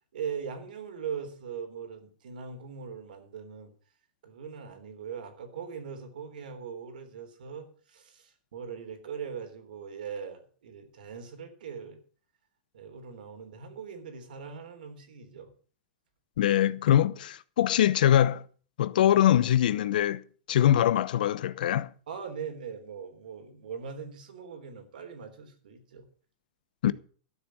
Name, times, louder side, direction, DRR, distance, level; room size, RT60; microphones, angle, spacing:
voice 1, 0.1-3.7 4.2-12.0 12.7-15.5 22.1-26.1, right 6 dB, 80° right, 3.7 m, -40 dB
voice 2, 16.4-18.4 18.8-20.2 20.5-21.9 26.8-26.9, left 11 dB, 75° left, 0.8 m, -23 dB
13.0 x 7.4 x 7.6 m
supercardioid pair, 145°, 5 cm